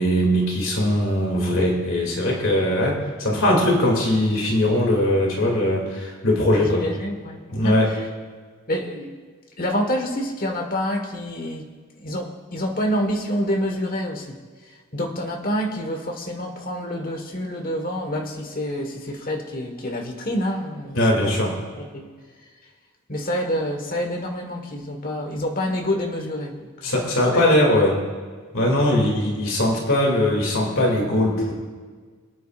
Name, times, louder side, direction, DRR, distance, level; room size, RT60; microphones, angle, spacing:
voice 1, 0.0-6.9 7.5-7.9 20.9-21.6 26.8-27.9 28.5-31.5, left 1 dB, 65° left, -1 dB, 2.7 m, -20 dB
voice 2, 6.6-8.0 8.7-9.1 9.6-11.7 12.0-14.4 14.9-21.0 21.7-22.1 23.1-26.7 27.3-27.8, equal, 40° left, 3 dB, 1.5 m, -27 dB
26.0 x 9.4 x 2.5 m, 1.5 s
head